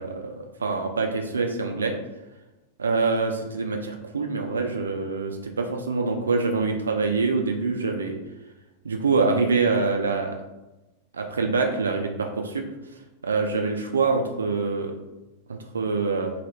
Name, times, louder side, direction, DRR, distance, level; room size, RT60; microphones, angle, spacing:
voice 1, 0.0-1.9 2.8-8.2 8.8-10.4 11.1-12.6 13.2-15.0 15.5-16.3, right 4 dB, 70° right, 4 dB, 0.3 m, -25 dB
3.0 x 2.2 x 3.2 m, 1.0 s
figure-of-eight pair, 90°, 0 cm